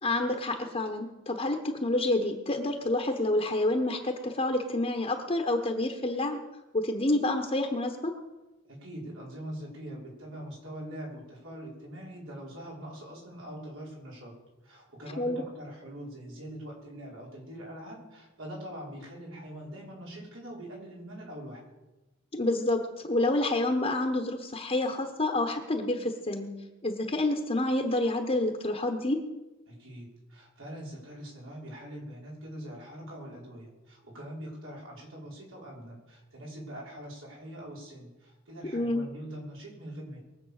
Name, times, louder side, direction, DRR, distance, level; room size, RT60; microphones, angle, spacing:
voice 1, 0.0-6.4 6.7-8.1 15.2-15.4 22.3-26.5 26.8-29.2 38.7-39.0, left 2 dB, 30° left, 3 dB, 1.2 m, -28 dB
voice 2, 8.7-14.3 14.6-21.6 29.7-40.2, equal, 85° right, -3 dB, 5.6 m, -43 dB
22.0 x 8.1 x 6.6 m, 1.1 s
head